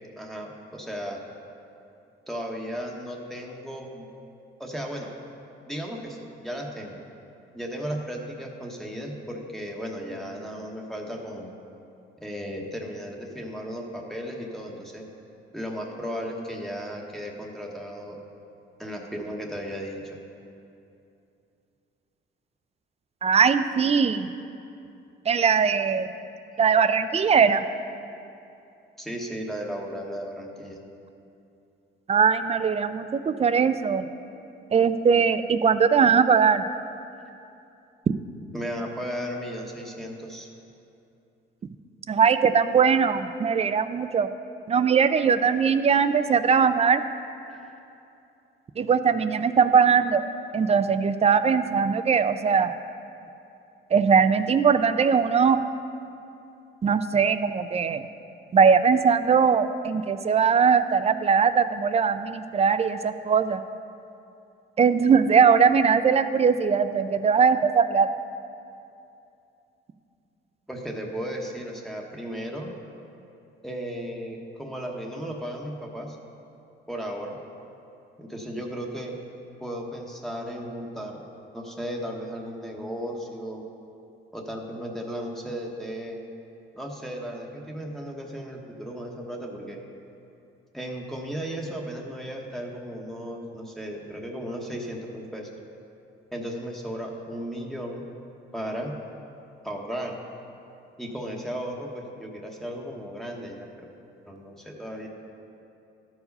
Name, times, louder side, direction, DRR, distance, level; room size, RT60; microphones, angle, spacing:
voice 1, 0.2-1.2 2.3-4.1 4.6-5.1 5.7-6.9 7.5-11.5 12.2-15.0 15.5-18.2 18.8-20.2 26.5-26.6 29.0-30.8 38.5-40.5 47.5-47.8 70.7-72.7 73.6-76.2 76.9-77.3 78.2-79.2 79.6-81.3 81.5-83.6 84.3-86.2 86.7-89.8 90.7-95.5 96.3-98.0 98.5-98.9 99.6-100.1 101.0-103.7 104.3-105.1, equal, ahead, -1 dB, 1.1 m, -35 dB
voice 2, 23.2-24.3 25.3-26.1 26.6-27.6 32.1-34.1 34.7-36.6 42.1-44.3 44.7-47.0 48.8-50.2 50.5-52.7 53.9-55.6 56.8-58.1 58.5-63.6 64.8-68.1, right 6 dB, 30° right, 11 dB, 0.4 m, -20 dB
12.5 x 4.8 x 5.4 m, 2.7 s
cardioid pair, 90°, 20 cm